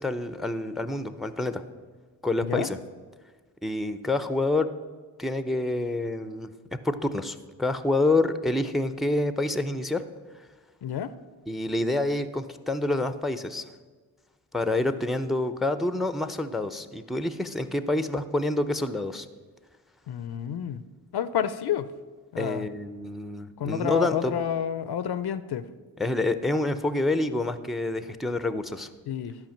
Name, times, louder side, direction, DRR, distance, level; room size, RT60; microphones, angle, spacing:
voice 1, 0.0-1.6 2.2-2.8 3.6-4.7 5.2-6.5 6.8-10.0 11.5-13.6 14.5-19.3 22.4-24.3 26.0-28.9, left 2 dB, ahead, 12 dB, 0.6 m, -27 dB
voice 2, 10.8-11.1 20.1-20.8 21.1-21.9 22.3-22.7 23.6-25.7 29.1-29.4, left 9 dB, 60° left, 14 dB, 0.6 m, -29 dB
10.5 x 4.9 x 7.2 m, 1.4 s
supercardioid pair, 45°, 45 cm